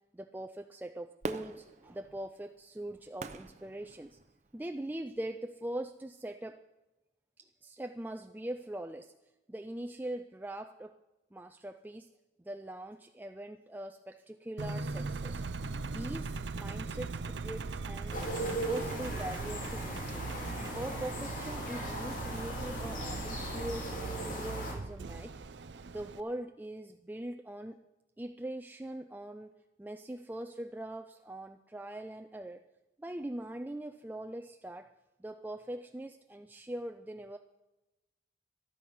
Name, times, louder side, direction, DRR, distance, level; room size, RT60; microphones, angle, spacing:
voice 1, 0.1-4.2 4.5-6.6 7.4-9.1 9.5-11.0 11.3-12.1 12.4-15.4 15.8-20.3 20.7-25.4 25.9-27.8 28.2-29.5 29.8-32.6 33.0-34.9 35.2-37.4, right 1 dB, 10° right, 6 dB, 0.4 m, -42 dB
Fireworks, 1.2-4.6 5.1-5.2, right 2 dB, 40° right, 0.7 m, -44 dB
Engine, 14.6-26.2, right 4 dB, 75° right, 0.6 m, -39 dB
sound 1, 18.1-24.7, equal, 45° left, 2.6 m, -38 dB
14.0 x 12.5 x 5.5 m, 1.0 s
head